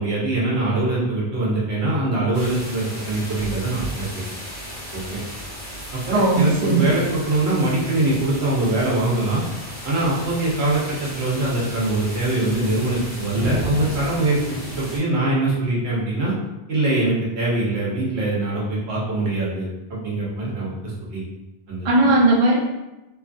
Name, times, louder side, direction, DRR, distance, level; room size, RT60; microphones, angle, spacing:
voice 1, 0.0-4.2 4.9-5.2 5.9-9.4 9.8-14.4 14.8-16.3 16.7-21.2 21.7-21.9, right 2 dB, 80° right, -5 dB, 1.1 m, -23 dB
sound 1, 2.3-15.0, equal, 35° left, 1.0 m, -34 dB
voice 2, 6.1-6.9 21.8-22.6, right 2 dB, 40° right, -3 dB, 0.5 m, -17 dB
2.9 x 2.4 x 2.5 m, 1.0 s
omnidirectional pair, 1.0 m